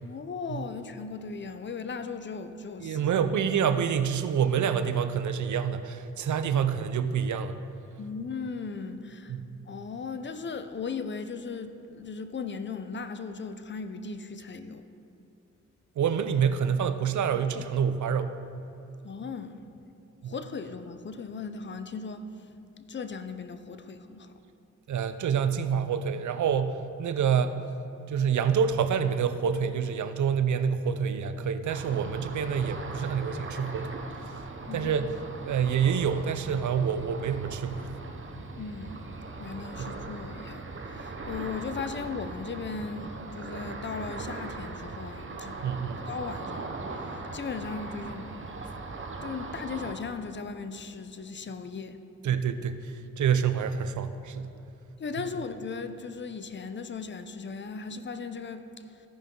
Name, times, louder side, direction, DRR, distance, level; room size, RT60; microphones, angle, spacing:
voice 1, 0.0-3.0 8.0-9.4 9.7-14.9 19.0-19.7 20.3-22.3 22.9-24.4 34.7-34.9 38.6-39.1 39.4-45.6 46.1-48.3 49.2-52.0 55.0-58.8, left 5 dB, 35° left, 0.6 m, -37 dB
voice 2, 2.8-7.6 9.3-9.6 16.0-18.3 20.2-20.3 24.9-27.6 28.1-34.0 34.7-35.1 35.5-37.9 39.8-39.9 45.6-46.0 52.2-54.5, right 7 dB, 70° right, 0.6 m, -27 dB
Ocean, 31.7-49.9, right 3 dB, 40° right, 1.0 m, -39 dB
15.5 x 5.4 x 3.8 m
cardioid pair, 55°, 31 cm